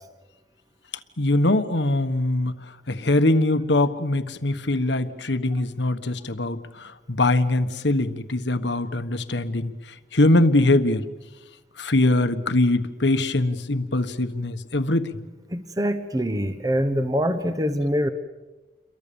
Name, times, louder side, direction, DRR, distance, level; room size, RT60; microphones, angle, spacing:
voice 1, 1.2-2.5 2.9-9.7 10.1-11.0 11.8-15.2, left 2 dB, 75° left, 10 dB, 1.4 m, -22 dB
voice 2, 15.5-18.1, equal, 20° right, 9 dB, 1.1 m, -24 dB
29.5 x 23.0 x 7.1 m, 1.2 s
head